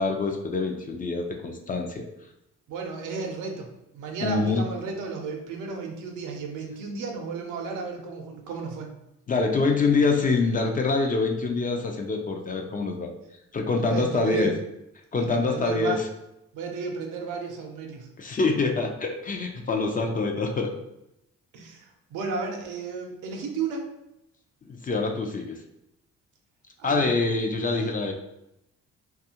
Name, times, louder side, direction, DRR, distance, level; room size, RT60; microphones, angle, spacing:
voice 1, 0.0-2.0 4.2-4.6 9.3-13.1 13.5-14.5 15.1-16.0 18.2-20.7 24.6-25.6 26.8-28.1, left 3 dB, 30° left, 3 dB, 0.4 m, -25 dB
voice 2, 2.7-3.7 3.9-8.9 13.8-14.5 15.3-16.0 16.5-18.1 21.5-23.9 26.8-27.1 27.6-28.0, right 4 dB, 85° right, 2 dB, 0.6 m, -33 dB
2.6 x 2.3 x 2.8 m, 0.85 s
cardioid pair, 90°, 30 cm